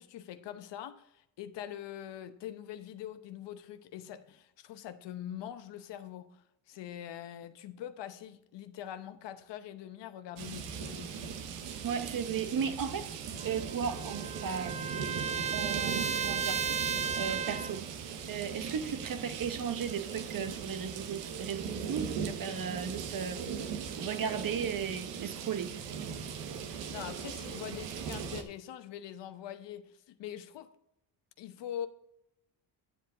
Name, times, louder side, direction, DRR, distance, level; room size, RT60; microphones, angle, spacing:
voice 1, 0.0-11.4 26.9-30.7 31.4-31.9, left 10 dB, 75° left, 0.9 m, -43 dB
sound 1, 10.4-28.4, right 7 dB, 85° right, 1.1 m, -39 dB
voice 2, 11.8-14.8 15.5-16.6 17.1-17.8 18.3-23.4 23.9-25.7, right 7 dB, 50° right, 1.0 m, -35 dB
Trumpet, 13.4-17.8, right 6 dB, 15° right, 0.4 m, -34 dB
9.6 x 7.6 x 3.8 m
cardioid pair, 75°, 43 cm